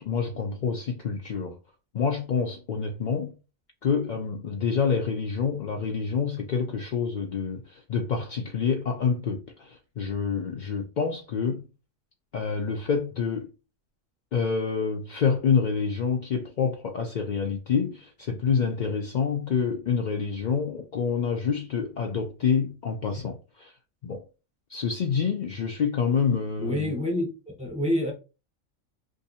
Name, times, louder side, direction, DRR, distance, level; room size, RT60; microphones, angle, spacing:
voice 1, 0.0-1.6 1.9-3.3 3.8-11.7 12.3-13.5 14.3-23.7 24.0-24.2 24.7-26.9, left 6 dB, 75° left, 0.4 m, -27 dB
voice 2, 26.6-27.3 27.6-28.1, left 1 dB, 5° right, 0.9 m, -26 dB
2.7 x 2.5 x 4.1 m
omnidirectional pair, 1.4 m